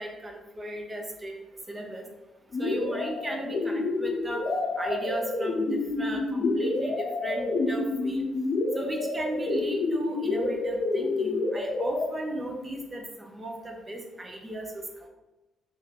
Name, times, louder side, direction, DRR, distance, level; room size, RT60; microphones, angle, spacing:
voice 1, 0.0-1.3 1.7-2.1 2.6-4.5 4.8-8.2 8.7-14.8, right 1 dB, 20° right, 2 dB, 0.8 m, -36 dB
sound 1, 2.5-12.1, left 2 dB, 55° left, 0.7 m, -28 dB
3.3 x 3.0 x 4.1 m, 1.1 s
cardioid pair, 90°, 0 cm